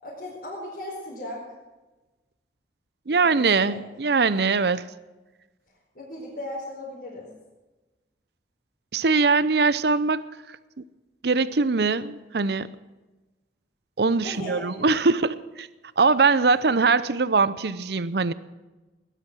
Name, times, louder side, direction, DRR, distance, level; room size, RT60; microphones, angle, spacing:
voice 1, 0.0-1.4 3.1-3.8 5.7-7.3 14.2-14.9, left 1 dB, 55° left, -6 dB, 4.6 m, -37 dB
voice 2, 3.1-4.9 8.9-10.2 11.2-12.7 14.0-15.7 16.0-18.3, right 4 dB, 60° right, 16 dB, 0.6 m, -22 dB
18.5 x 12.0 x 6.2 m, 1.1 s
head